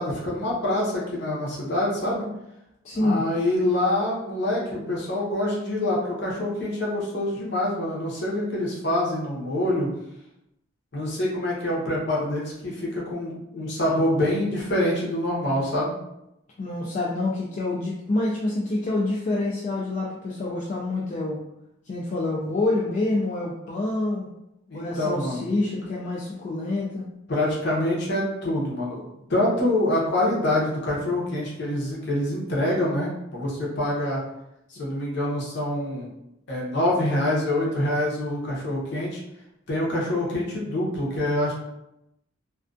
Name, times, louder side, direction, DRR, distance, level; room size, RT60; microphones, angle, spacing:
voice 1, 0.0-2.2 2.9-9.9 10.9-15.9 24.7-25.4 27.3-29.0 29.3-34.2 34.7-36.1 36.5-39.2 39.7-41.5, left 1 dB, 55° left, -4 dB, 0.8 m, -25 dB
voice 2, 2.8-3.2 16.6-21.4 21.8-24.3 24.7-27.0, left 2 dB, 35° left, -4 dB, 0.3 m, -27 dB
2.3 x 2.3 x 2.4 m, 0.85 s
head